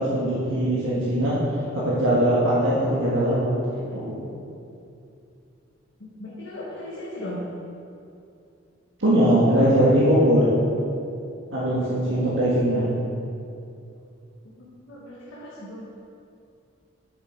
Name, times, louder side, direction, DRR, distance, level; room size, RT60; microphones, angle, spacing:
voice 1, 0.0-1.4 1.7-4.2 9.0-10.5 11.5-12.9, right 1 dB, 80° right, -8 dB, 1.6 m, -21 dB
voice 2, 6.0-7.4 14.6-15.8, left 1 dB, 75° left, -7 dB, 1.3 m, -37 dB
7.4 x 6.6 x 4.5 m, 2.5 s
head